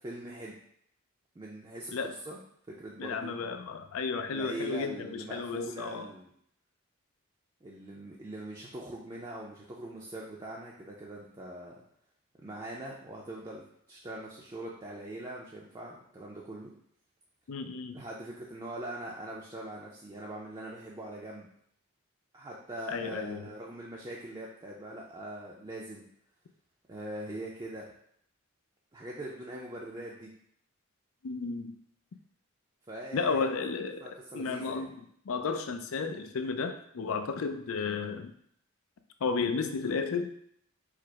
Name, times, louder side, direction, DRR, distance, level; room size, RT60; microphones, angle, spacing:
voice 1, 0.0-0.5 1.4-1.9 2.2-2.4 2.7-3.5 4.3-6.3 7.6-11.7 12.4-16.7 17.9-21.5 22.3-26.1 26.9-27.9 28.9-30.3 32.9-33.4 34.0-34.9, right 1 dB, 20° right, -4 dB, 0.5 m, -42 dB
voice 2, 3.0-6.1 17.5-18.0 22.9-23.4 31.2-31.8 33.1-34.0 34.3-34.9 35.3-38.3 39.2-40.3, left 4 dB, 70° left, 8 dB, 0.4 m, -33 dB
4.8 x 2.0 x 4.6 m, 0.68 s
head